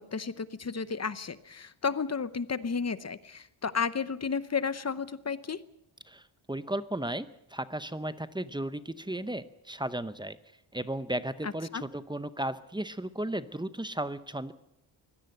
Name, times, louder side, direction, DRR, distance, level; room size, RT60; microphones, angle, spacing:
voice 1, 0.0-5.6 11.4-11.8, left 5 dB, 35° left, 15 dB, 0.9 m, -33 dB
voice 2, 6.5-10.4 10.7-14.5, right 1 dB, 10° right, 13 dB, 0.8 m, -35 dB
23.0 x 17.5 x 7.9 m, 0.83 s
wide cardioid pair, 150°, 48 cm